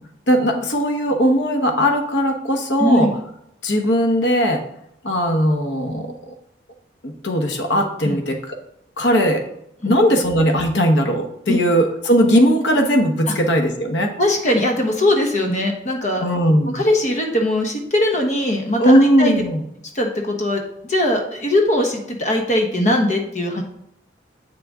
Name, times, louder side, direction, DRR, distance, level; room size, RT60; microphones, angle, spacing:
voice 1, 0.3-3.1 3.6-4.6 5.0-6.3 7.0-8.6 9.0-9.4 9.8-14.1 16.2-16.8 18.8-19.6, equal, 75° left, 4 dB, 1.1 m, -18 dB
voice 2, 2.8-3.1 8.0-8.2 9.8-9.9 11.5-11.6 14.2-16.2 16.7-19.4 19.9-23.6, left 1 dB, 40° left, 2 dB, 1.1 m, -20 dB
8.5 x 6.3 x 3.6 m, 0.77 s
head